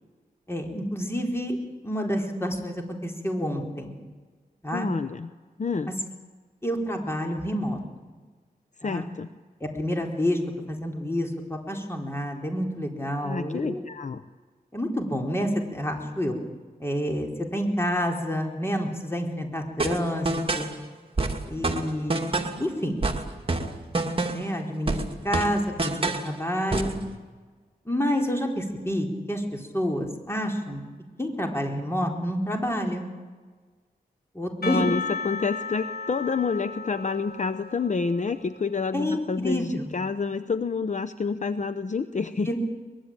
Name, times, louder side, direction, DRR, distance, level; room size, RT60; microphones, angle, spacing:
voice 1, 0.5-1.6 1.8-3.9 4.6-4.9 5.9-6.0 6.6-7.8 8.8-9.1 9.6-10.4 10.7-13.8 14.7-16.4 16.8-20.3 20.5-20.7 21.5-22.2 22.6-23.0 24.3-25.0 25.2-26.9 27.9-30.8 31.2-33.1 34.3-34.8 38.9-39.9 42.5-42.6, equal, 15° left, 2 dB, 4.2 m, -28 dB
voice 2, 4.7-5.3 5.6-5.9 8.8-9.3 13.2-14.2 34.6-42.5, left 4 dB, 50° left, 12 dB, 0.8 m, -28 dB
sound 1, 19.8-20.7 21.2-22.6 23.0-24.5 24.9-26.3 26.7-27.0, right 2 dB, 35° right, 2.5 m, -27 dB
Percussion / Church bell, 34.6-39.2, left 4 dB, 75° left, 2.0 m, -36 dB
23.5 x 21.5 x 8.9 m, 1.4 s
wide cardioid pair, 95°, 16 cm